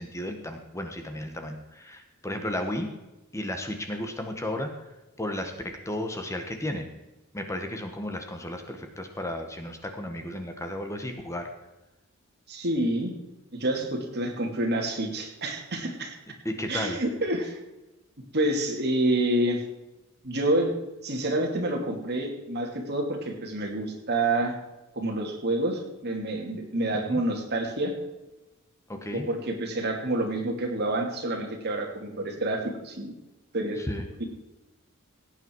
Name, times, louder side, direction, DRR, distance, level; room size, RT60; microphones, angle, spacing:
voice 1, 0.0-2.9 3.3-4.7 5.2-6.9 7.3-11.5 16.4-17.0 26.9-27.2 28.9-29.3 33.8-34.0, left 1 dB, 15° left, 5 dB, 1.3 m, -34 dB
voice 2, 12.5-13.1 13.5-16.1 16.7-17.6 18.3-19.6 20.2-20.7 21.0-24.5 25.0-27.9 29.1-33.1 33.5-33.8, right 1 dB, 50° right, 2 dB, 2.7 m, -28 dB
17.0 x 9.1 x 4.7 m, 1.0 s
head